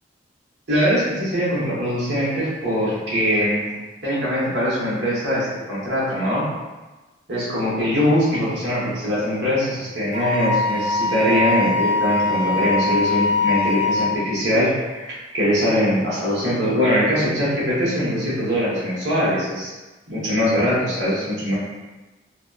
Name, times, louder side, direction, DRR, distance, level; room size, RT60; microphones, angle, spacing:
voice 1, 0.7-3.7 4.0-6.4 7.3-19.7 20.1-21.6, equal, 75° right, -8 dB, 1.0 m, -22 dB
Wind instrument woodwind instrument, 10.1-14.1, left 3 dB, 85° left, 0.5 m, -22 dB
2.6 x 2.1 x 2.3 m, 1.2 s
head